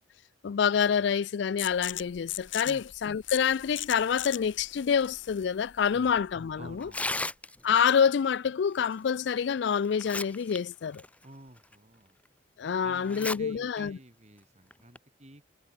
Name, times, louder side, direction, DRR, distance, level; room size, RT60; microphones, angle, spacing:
voice 1, 0.4-6.9 7.6-11.0 12.6-14.0, left 7 dB, 65° left, 0.4 m, -27 dB
sound 1, 1.6-7.1, left 14 dB, 80° left, 2.2 m, -40 dB
voice 2, 6.6-7.3 11.2-12.2 12.8-15.5, right 1 dB, 35° right, 3.9 m, -50 dB
Tearing, 6.8-7.8 9.3-9.4 9.8-10.6 10.9-11.1 11.7-11.8 13.1-13.4 13.8-13.9 14.7-15.0, left 2 dB, 5° left, 1.4 m, -34 dB
head